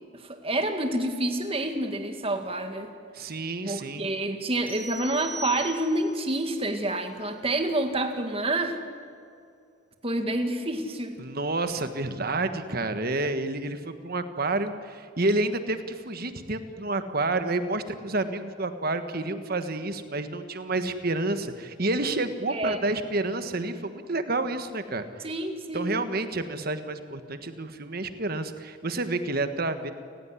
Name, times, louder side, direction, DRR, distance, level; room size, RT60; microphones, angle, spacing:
voice 1, 0.1-2.9 3.7-8.8 10.0-11.1 22.5-22.8 25.2-25.9, right 1 dB, 30° right, 6 dB, 2.1 m, -28 dB
voice 2, 3.1-4.1 11.2-25.0 25.7-29.9, right 2 dB, 50° right, 9 dB, 1.4 m, -29 dB
sound 1, 4.7-6.2, equal, 10° right, 5.7 m, -39 dB
30.0 x 16.0 x 9.8 m, 2.3 s
head